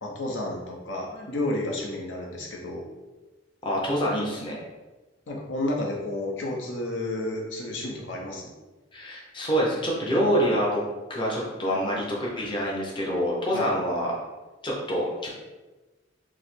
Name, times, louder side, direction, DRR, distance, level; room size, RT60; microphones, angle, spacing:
voice 1, 0.0-2.9 5.3-8.5 13.5-13.7, left 1 dB, 75° left, -1 dB, 0.8 m, -31 dB
voice 2, 3.6-4.6 8.9-10.8 11.1-14.2 14.6-15.3, equal, 25° left, -4 dB, 0.7 m, -26 dB
4.8 x 2.1 x 4.2 m, 1.2 s
head